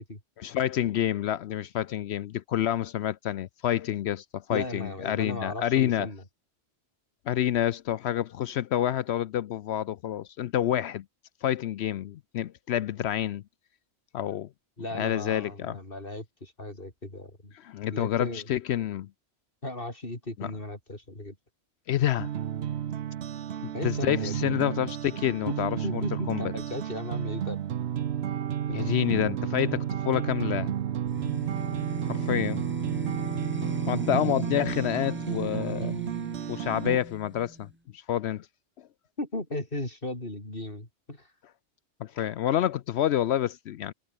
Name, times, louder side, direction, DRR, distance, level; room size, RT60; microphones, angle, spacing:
voice 1, 0.4-6.1 7.3-11.0 11.4-13.4 14.1-14.5 14.9-15.8 17.5-19.1 20.4-20.5 21.9-22.3 23.6-26.0 26.3-26.5 28.7-30.7 31.7-31.8 32.1-32.6 33.8-36.0 36.5-37.7 37.9-38.5 38.8-38.9 42.0-43.9, left 11 dB, 70° left, 0.8 m, -28 dB
voice 2, 4.5-6.2 14.8-17.5 17.9-18.5 19.6-21.4 23.7-24.5 25.5-25.6 25.8-27.6 39.2-41.3, left 1 dB, 50° left, 5.3 m, -36 dB
sound 1, 22.2-37.0, right 10 dB, 65° right, 1.0 m, -32 dB
sound 2, 31.1-37.7, right 1 dB, 10° right, 2.6 m, -38 dB
omnidirectional pair, 1.2 m